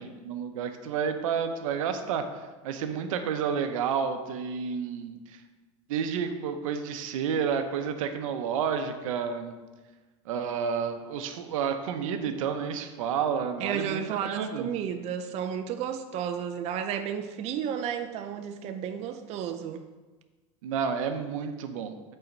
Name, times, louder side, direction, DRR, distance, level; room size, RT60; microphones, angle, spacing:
voice 1, 0.0-2.2 2.6-5.4 5.9-9.5 10.3-14.7 20.6-22.2, right 7 dB, 85° right, 8 dB, 0.7 m, -30 dB
voice 2, 13.6-19.8, right 8 dB, 40° right, 7 dB, 0.5 m, -32 dB
5.6 x 4.1 x 5.2 m, 1.3 s
supercardioid pair, 130°, 17 cm